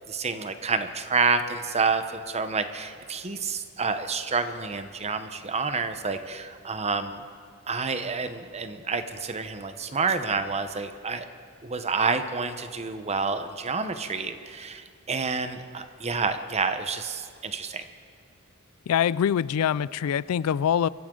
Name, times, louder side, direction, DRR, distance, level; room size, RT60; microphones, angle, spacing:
voice 1, 0.1-7.2 7.7-11.3 11.6-17.9, right 4 dB, 30° right, 9 dB, 0.9 m, -29 dB
voice 2, 18.9-20.9, left 8 dB, 90° left, 20 dB, 0.3 m, -24 dB
25.5 x 14.0 x 3.8 m, 2.3 s
head